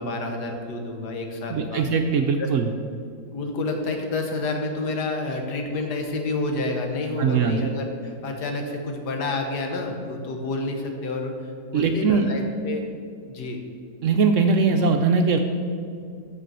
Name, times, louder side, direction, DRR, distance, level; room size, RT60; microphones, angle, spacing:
voice 1, 0.0-1.8 2.4-2.5 3.3-11.3 11.7-12.8 13.3-13.6, left 2 dB, 85° left, 3 dB, 1.7 m, -29 dB
voice 2, 1.5-2.7 7.2-7.7 11.7-12.3 14.0-15.4, right 5 dB, 70° right, 5 dB, 0.7 m, -21 dB
6.8 x 6.6 x 6.1 m, 2.3 s
omnidirectional pair, 1.7 m